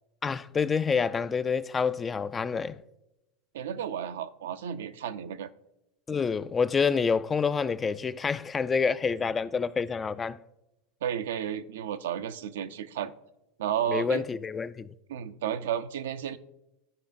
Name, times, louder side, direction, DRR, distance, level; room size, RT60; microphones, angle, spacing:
voice 1, 0.2-2.8 6.1-10.4 13.9-14.9, left 5 dB, 25° left, 0.3 m, -27 dB
voice 2, 3.5-5.5 11.0-13.1 13.6-14.2 15.1-16.4, right 9 dB, 75° right, 0.4 m, -32 dB
14.0 x 5.0 x 2.5 m
hypercardioid pair, 90°, 0 cm